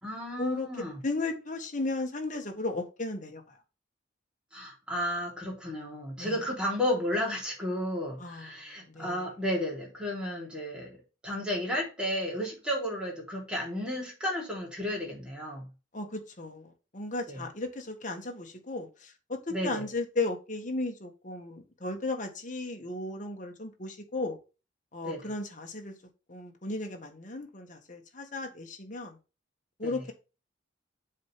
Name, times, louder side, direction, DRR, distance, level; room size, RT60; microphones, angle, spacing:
voice 1, 0.0-1.0 4.5-15.7 17.3-17.4 19.5-19.8 25.0-25.2 29.8-30.0, left 1 dB, 5° right, 3.3 m, -33 dB
voice 2, 1.0-3.5 6.2-6.4 8.2-9.2 15.9-24.4 24.9-25.9 26.3-29.2 29.8-30.1, left 2 dB, 40° left, 1.6 m, -35 dB
7.5 x 4.5 x 3.4 m
head